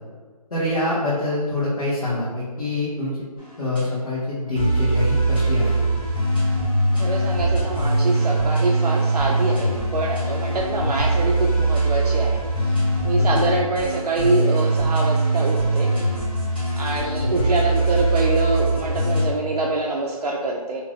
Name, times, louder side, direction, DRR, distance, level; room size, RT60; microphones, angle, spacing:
voice 1, 0.5-3.2 3.6-5.8 17.0-17.1, left 2 dB, 60° left, -10 dB, 1.0 m, -25 dB
sound 1, 3.4-3.8 4.6-19.3, right 2 dB, 15° left, 0.5 m, -21 dB
voice 2, 7.0-12.4 12.7-12.8 13.0-15.9 16.8-20.8, right 2 dB, 75° right, -2 dB, 0.4 m, -25 dB
2.8 x 2.5 x 3.2 m, 1.5 s
hypercardioid pair, 175°, 20 cm